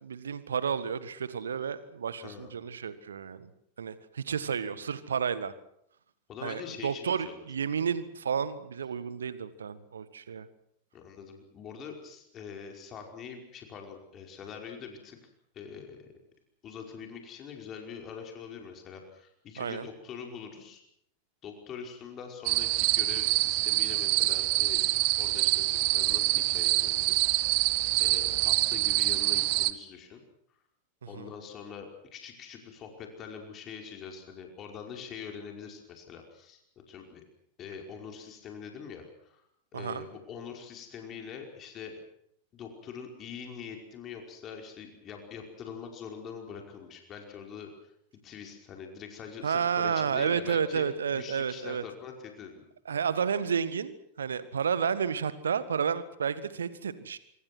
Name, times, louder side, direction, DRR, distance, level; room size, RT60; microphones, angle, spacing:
voice 1, 0.0-3.5 3.8-5.5 6.4-10.5 19.6-19.8 31.1-31.3 39.7-40.0 49.4-51.8 52.9-57.2, right 7 dB, 70° right, 15 dB, 1.7 m, -31 dB
voice 2, 2.2-2.5 6.3-7.4 10.9-15.2 15.5-16.1 16.6-20.8 21.4-24.8 25.2-27.7 28.0-30.2 31.1-36.6 36.9-37.2 37.6-39.4 39.7-41.9 42.5-47.9 48.2-52.7, left 6 dB, 30° left, 3 dB, 5.2 m, -44 dB
sound 1, 22.5-29.7, right 20 dB, 45° right, 1.3 m, -26 dB
25.5 x 25.0 x 6.3 m, 0.71 s
figure-of-eight pair, 90°, 0 cm